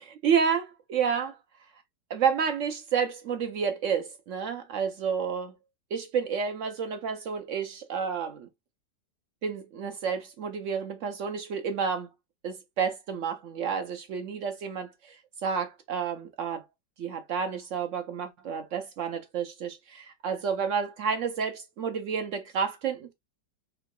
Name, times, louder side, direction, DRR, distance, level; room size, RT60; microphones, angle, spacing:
voice 1, 0.1-1.4 2.1-5.5 5.9-8.5 9.4-12.1 12.4-15.2 15.4-16.6 17.0-23.1, right 6 dB, 70° right, 0.7 m, -30 dB
3.6 x 2.9 x 3.5 m
omnidirectional pair, 1.8 m